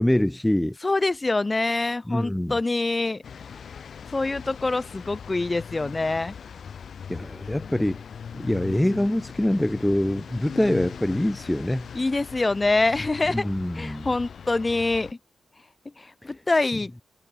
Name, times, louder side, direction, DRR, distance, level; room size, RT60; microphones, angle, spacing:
voice 1, 0.0-0.7 2.1-2.6 7.1-8.0 8.3-11.9 13.3-14.1 16.2-16.4, left 1 dB, 10° left, 5.0 m, -24 dB
voice 2, 0.8-3.2 4.1-6.4 11.9-13.5 13.8-15.1 16.0-16.9, left 2 dB, 35° left, 2.0 m, -25 dB
sound 1, 3.2-15.1, left 7 dB, 70° left, 3.0 m, -40 dB
supercardioid pair, 40°, 0 cm